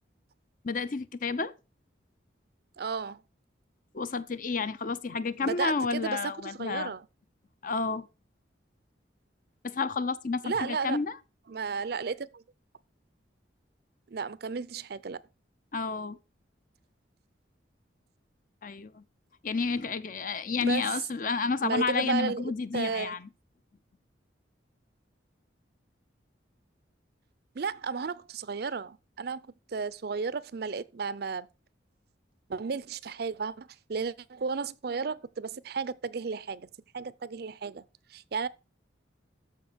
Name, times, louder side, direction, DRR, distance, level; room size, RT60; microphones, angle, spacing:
voice 1, 0.6-1.5 3.9-6.9 7.6-8.1 9.6-11.2 15.7-16.2 18.6-19.0 19.4-23.3, left 4 dB, 45° left, 0.6 m, -30 dB
voice 2, 2.8-3.2 5.4-7.1 10.4-11.0 11.5-12.4 14.1-15.2 20.6-21.0 21.6-23.1 27.6-31.5 32.5-36.7 36.9-37.8 38.1-38.5, right 5 dB, 55° right, 0.5 m, -33 dB
13.5 x 5.1 x 5.1 m
head